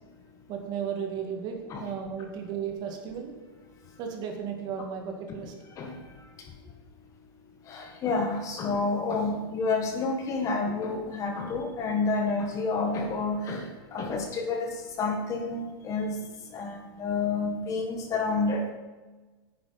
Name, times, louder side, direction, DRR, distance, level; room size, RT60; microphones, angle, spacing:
voice 1, 0.5-3.3 4.0-5.5, right 7 dB, 35° right, 4 dB, 2.0 m, -34 dB
voice 2, 7.7-16.2 16.5-18.7, left 3 dB, 25° left, 3 dB, 1.6 m, -29 dB
9.7 x 9.5 x 5.8 m, 1.3 s
supercardioid pair, 150°, 12 cm